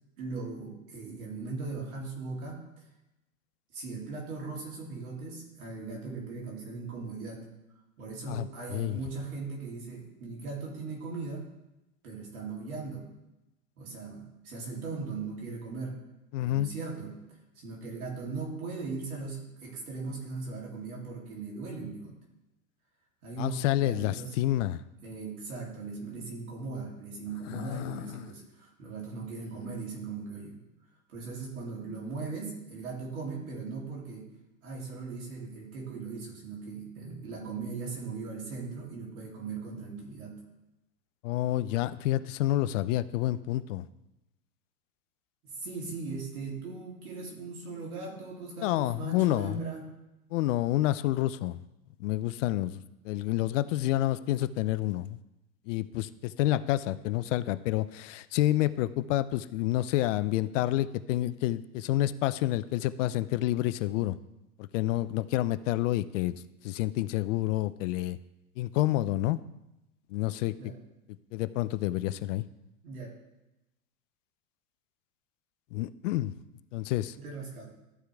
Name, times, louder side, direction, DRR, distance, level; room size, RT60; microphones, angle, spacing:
voice 1, 0.2-2.6 3.7-7.4 8.0-11.5 12.0-13.1 13.8-16.0 16.4-17.2 17.5-22.2 23.2-24.3 25.0-30.6 31.1-34.3 34.6-40.4 45.4-49.8 70.6-70.8 72.8-73.1 77.2-77.6, right 4 dB, 80° right, -2 dB, 3.2 m, -39 dB
voice 2, 8.3-9.0 16.3-16.7 23.4-24.8 27.5-28.3 41.2-43.8 48.6-49.6 50.3-51.6 52.0-55.2 55.7-64.2 64.6-68.2 68.6-69.4 70.1-70.5 71.3-72.4 75.7-76.3 76.7-77.2, left 15 dB, 60° left, 15 dB, 0.6 m, -29 dB
14.0 x 4.8 x 3.4 m, 0.93 s
hypercardioid pair, 120°, 43 cm